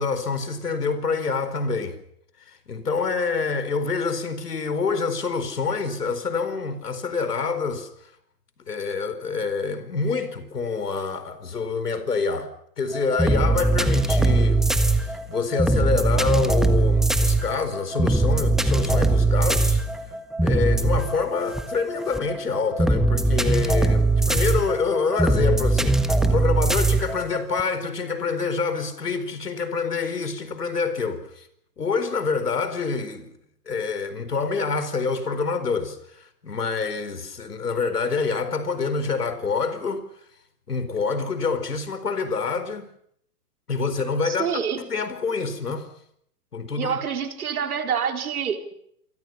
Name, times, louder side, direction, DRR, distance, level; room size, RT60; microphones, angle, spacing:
voice 1, 0.0-2.0 2.5-7.9 8.7-12.5 12.8-19.8 20.4-31.5 31.8-33.3 33.7-40.0 40.7-42.9 43.7-44.5 44.8-45.9 46.5-47.0, left 4 dB, 75° left, 4.6 m, -26 dB
sound 1, 12.9-27.6, right 2 dB, ahead, 1.5 m, -21 dB
voice 2, 44.2-44.8 46.8-48.7, right 7 dB, 65° right, 4.0 m, -27 dB
28.0 x 24.0 x 5.8 m
figure-of-eight pair, 115°, 47 cm